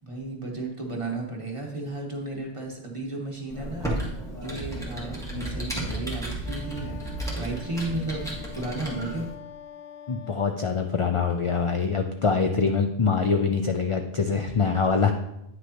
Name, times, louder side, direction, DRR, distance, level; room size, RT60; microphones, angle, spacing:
voice 1, 0.0-3.9 4.4-7.0 7.3-8.2 8.5-9.3, right 2 dB, 30° right, -1 dB, 1.3 m, -33 dB
Computer keyboard, 3.5-9.3, right 1 dB, 5° left, 1.5 m, -33 dB
Wind instrument woodwind instrument, 6.4-11.1, left 7 dB, 85° left, 0.9 m, -45 dB
voice 2, 10.1-15.1, left 5 dB, 50° left, 5 dB, 0.4 m, -24 dB
9.4 x 6.2 x 2.9 m, 0.82 s
omnidirectional pair, 1.1 m